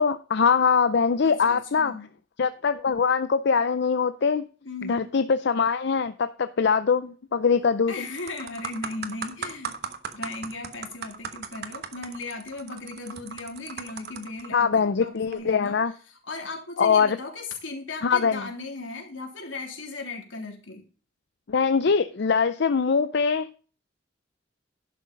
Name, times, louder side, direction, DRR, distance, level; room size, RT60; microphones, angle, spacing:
voice 1, 0.0-1.9 2.4-4.4 4.9-7.9 14.5-15.9 16.8-17.2 18.0-18.4 21.5-23.5, left 5 dB, 65° left, 0.5 m, -22 dB
voice 2, 1.2-2.0 4.6-5.1 7.9-9.8 10.1-15.8 16.1-20.8, left 3 dB, 85° left, 3.2 m, -37 dB
sound 1, 7.4-7.7 8.1-14.5 15.2-15.3, right 6 dB, 60° right, 1.2 m, -37 dB
11.5 x 6.4 x 5.2 m
head